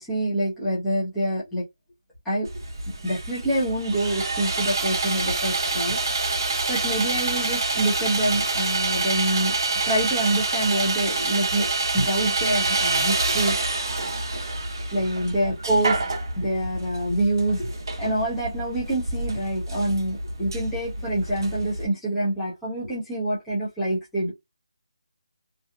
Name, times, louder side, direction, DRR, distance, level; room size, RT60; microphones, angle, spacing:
voice 1, 0.0-1.6 2.2-2.5 3.0-6.0 6.7-9.5 9.9-11.7 11.9-13.6 14.9-16.0 16.4-17.7 18.0-24.3, right 1 dB, 5° left, 0.4 m, -26 dB
Sawing, 2.5-21.8, right 3 dB, 40° right, 0.6 m, -27 dB
2.7 x 2.4 x 2.2 m
figure-of-eight pair, 175°, 3 cm